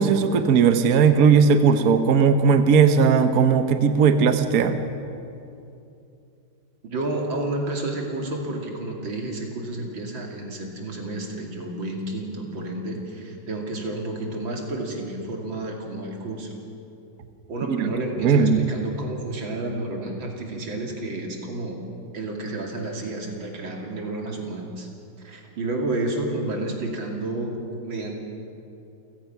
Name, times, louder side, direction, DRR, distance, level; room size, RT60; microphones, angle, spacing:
voice 1, 0.0-4.9 17.7-17.9 18.2-18.6, right 6 dB, 55° right, 8 dB, 1.3 m, -18 dB
voice 2, 6.9-16.6 17.5-24.9 25.2-28.2, right 2 dB, 90° right, 1 dB, 3.3 m, -30 dB
29.5 x 16.0 x 5.9 m, 2.7 s
omnidirectional pair, 2.1 m